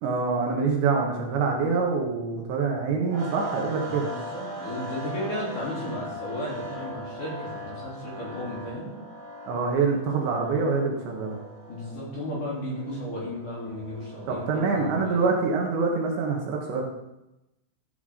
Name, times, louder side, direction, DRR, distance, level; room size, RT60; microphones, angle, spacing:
voice 1, 0.0-4.1 9.5-11.4 14.3-16.8, right 4 dB, 70° right, 0 dB, 3.3 m, -25 dB
sound 1, 3.1-15.5, equal, 40° right, 3.4 m, -40 dB
voice 2, 3.8-8.9 11.7-15.3, left 1 dB, 45° left, -6 dB, 4.3 m, -34 dB
13.5 x 8.0 x 3.7 m, 0.92 s
omnidirectional pair, 5.7 m